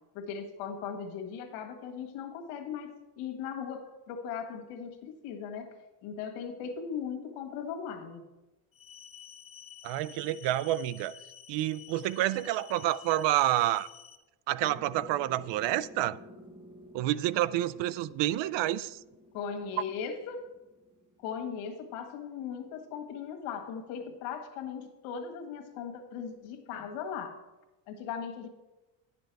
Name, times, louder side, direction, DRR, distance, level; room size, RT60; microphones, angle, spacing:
voice 1, 0.1-5.7 6.0-8.2 19.3-20.5 21.2-27.4 27.9-28.5, left 7 dB, 90° left, 1.6 m, -38 dB
sound 1, 8.7-14.2, left 9 dB, 25° left, 0.9 m, -51 dB
voice 2, 9.8-11.1 11.5-13.9 14.5-16.2 16.9-19.0, right 14 dB, 60° right, 0.5 m, -29 dB
sound 2, 14.6-21.8, equal, 10° right, 1.1 m, -53 dB
10.5 x 6.9 x 4.6 m
cardioid pair, 110°, 49 cm